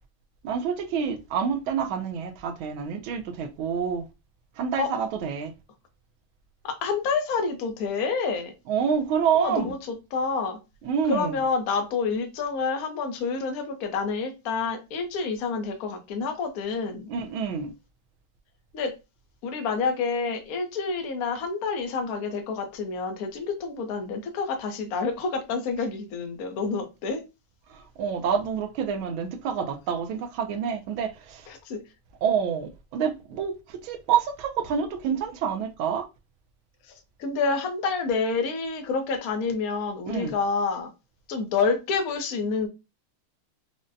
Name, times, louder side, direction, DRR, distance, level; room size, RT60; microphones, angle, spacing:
voice 1, 0.4-4.1 4.6-5.5 8.7-9.7 10.8-11.4 17.1-17.7 27.7-31.5 32.2-36.0 40.1-40.3, right 7 dB, 75° right, 1.4 m, -27 dB
voice 2, 6.6-8.5 9.3-10.6 11.1-17.1 18.7-18.9 19.4-27.2 31.5-31.8 37.2-40.9 41.3-42.7, left 4 dB, 60° left, 0.9 m, -28 dB
5.0 x 2.1 x 2.5 m
omnidirectional pair, 2.3 m